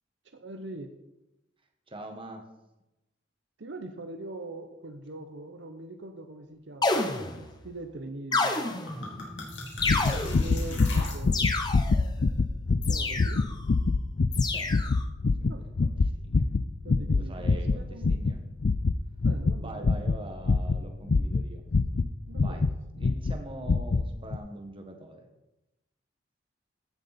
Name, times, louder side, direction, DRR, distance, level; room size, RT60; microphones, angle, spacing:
voice 1, 0.2-0.9 3.6-8.8 9.9-11.5 12.9-13.5 15.5-15.7 16.8-18.2 19.2-20.1 22.3-22.7, right 2 dB, 70° right, 7 dB, 0.8 m, -42 dB
voice 2, 1.9-2.4 10.2-11.1 14.5-14.7 15.4-15.9 16.3-16.5 17.1-18.4 19.6-21.6 22.4-22.6 22.9-25.3, right 1 dB, 30° right, 4 dB, 1.5 m, -43 dB
sound 1, 6.8-7.6 8.3-9.1 9.8-10.6 11.3-12.1 12.8-13.6 14.3-15.0, left 3 dB, 20° left, 0.9 m, -29 dB
sound 2, 8.3-8.4 8.7-11.7, left 2 dB, 70° left, 2.9 m, -40 dB
sound 3, 9.8-22.7 23.0-23.4 23.6-24.1 24.3-24.4, left 3 dB, 50° left, 0.4 m, -25 dB
15.5 x 6.7 x 4.2 m, 0.96 s
head